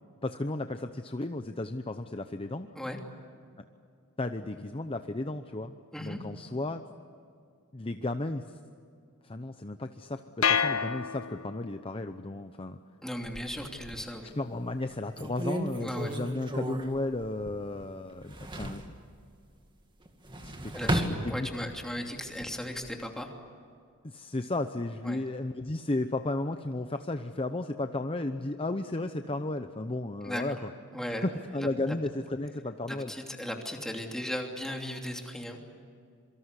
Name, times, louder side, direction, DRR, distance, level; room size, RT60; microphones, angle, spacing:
voice 1, 0.2-2.7 4.2-6.8 7.7-8.6 9.2-12.8 14.2-18.9 20.4-20.9 21.2-21.7 24.0-30.7 31.1-31.2 31.5-33.1, left 2 dB, 25° left, 8 dB, 0.8 m, -34 dB
sound 1, 10.4-11.8, left 7 dB, 70° left, 1.2 m, -28 dB
voice 2, 13.0-14.3 15.8-16.1 20.7-23.3 25.0-25.2 30.2-30.6 30.9-31.3 31.9-32.0 32.9-35.6, equal, 5° left, 2 dB, 2.9 m, -37 dB
sound 2, 13.2-14.2 14.7-14.8 15.2-17.8 18.1-18.9 20.1-21.8 22.3-22.9, right 1 dB, 20° right, 2.2 m, -34 dB
27.0 x 24.5 x 8.3 m, 2.4 s
head